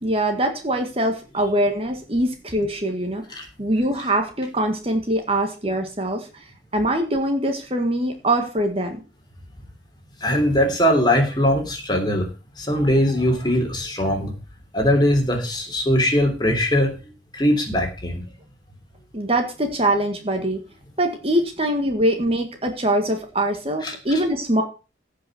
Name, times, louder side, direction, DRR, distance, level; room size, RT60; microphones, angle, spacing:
voice 1, 0.0-3.2 3.6-6.3 6.7-9.0 19.1-20.6 21.0-24.6, right 1 dB, 30° right, 5 dB, 1.8 m, -23 dB
voice 2, 10.2-12.3 12.6-14.3 14.7-16.9 17.3-18.2 23.8-24.0, equal, 20° left, 2 dB, 3.1 m, -20 dB
16.0 x 5.7 x 6.2 m, 0.33 s
head